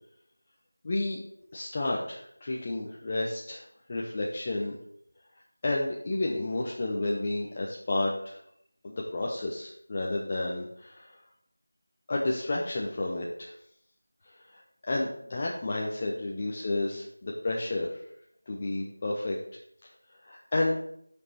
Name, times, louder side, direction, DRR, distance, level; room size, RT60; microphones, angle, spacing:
voice 1, 0.8-1.2 1.5-4.7 5.6-8.4 8.8-11.2 12.1-13.5 14.5-18.0 18.5-19.4 20.2-20.8, left 2 dB, 20° left, -2 dB, 0.6 m, -31 dB
7.0 x 5.3 x 6.4 m, 0.70 s
figure-of-eight pair, 175°, 0 cm